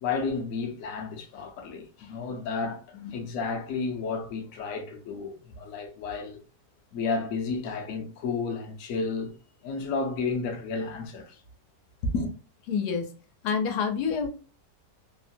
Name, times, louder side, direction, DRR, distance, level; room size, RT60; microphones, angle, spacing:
voice 1, 0.0-6.4 6.9-9.3 9.6-11.4 12.1-12.3, left 4 dB, 70° left, 0.9 m, -32 dB
voice 2, 12.7-13.1 13.4-14.3, left 6 dB, 85° left, 1.2 m, -27 dB
3.1 x 2.1 x 2.6 m
omnidirectional pair, 1.7 m